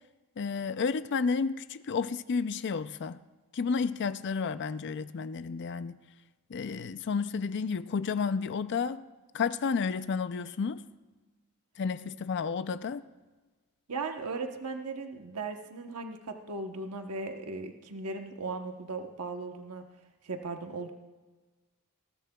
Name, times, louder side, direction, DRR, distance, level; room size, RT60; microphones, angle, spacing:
voice 1, 0.4-3.2 3.5-6.0 6.5-9.0 9.3-10.8 11.8-13.0, left 5 dB, 55° left, 0.4 m, -31 dB
voice 2, 13.9-19.9 20.2-20.9, right 3 dB, 85° right, 1.0 m, -37 dB
20.5 x 17.0 x 2.3 m
head